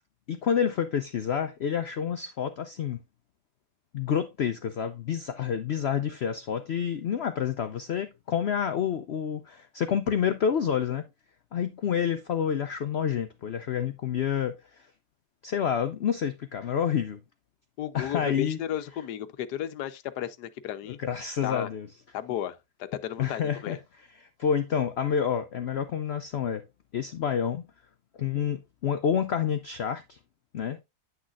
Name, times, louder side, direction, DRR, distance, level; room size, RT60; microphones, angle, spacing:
voice 1, 0.3-3.0 3.9-11.1 11.5-14.5 15.4-17.2 17.9-18.6 20.9-21.9 23.2-26.6 26.9-27.7 28.2-30.2 30.5-30.8, left 8 dB, 60° left, 0.6 m, -28 dB
voice 2, 17.8-21.0 21.4-21.7 22.1-23.8, left 11 dB, 90° left, 1.3 m, -33 dB
9.4 x 6.3 x 2.4 m
omnidirectional pair, 1.7 m